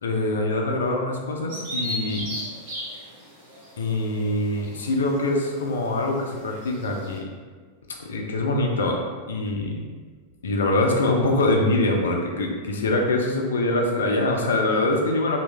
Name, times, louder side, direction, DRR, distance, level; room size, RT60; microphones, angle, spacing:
voice 1, 0.0-2.3 3.8-7.3 8.0-9.8 10.4-15.4, left 2 dB, 65° left, 1 dB, 0.5 m, -24 dB
Bird vocalization bird call bird song, 1.5-7.2, equal, 55° right, 1.1 m, -36 dB
3.0 x 2.6 x 3.3 m, 1.5 s
figure-of-eight pair, 90°, 0 cm